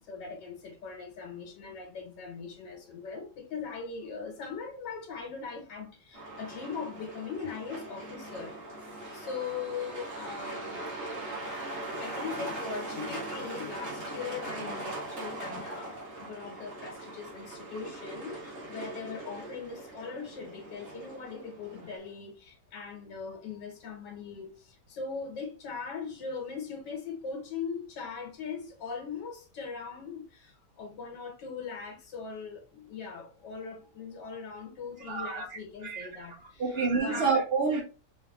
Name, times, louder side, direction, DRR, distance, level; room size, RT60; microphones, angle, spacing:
voice 1, 0.1-8.5 9.1-10.9 11.8-24.5 24.9-30.5 30.8-37.2, left 5 dB, 90° left, 1.7 m, -40 dB
Truck, 6.1-22.0, right 2 dB, 45° right, 1.9 m, -40 dB
voice 2, 35.0-37.8, right 4 dB, 85° right, 0.5 m, -29 dB
4.5 x 3.2 x 2.3 m
omnidirectional pair, 1.9 m